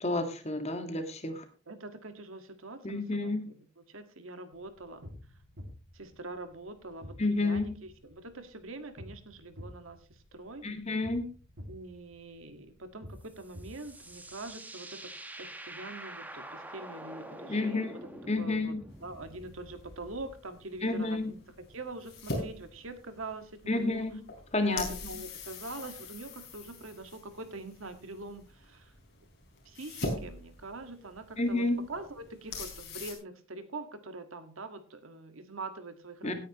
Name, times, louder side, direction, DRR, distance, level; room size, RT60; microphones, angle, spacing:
voice 1, 0.0-1.4 2.8-3.5 7.2-7.7 10.6-11.3 17.5-17.9 18.3-18.8 20.8-21.3 23.7-24.2 24.5-24.9 31.4-31.8 36.2-36.3, left 2 dB, 30° left, 7 dB, 1.8 m, -30 dB
voice 2, 1.7-5.0 5.9-10.7 11.7-15.1 15.4-18.1 18.4-24.1 24.7-28.9 29.7-36.3, right 2 dB, 85° right, 9 dB, 1.8 m, -44 dB
sound 1, 4.6-14.5, left 1 dB, 65° right, 2.4 m, -50 dB
sound 2, 13.2-20.4, right 1 dB, 10° right, 1.2 m, -46 dB
sound 3, 18.9-33.1, left 2 dB, 55° left, 4.1 m, -43 dB
17.0 x 9.8 x 3.0 m, 0.36 s
head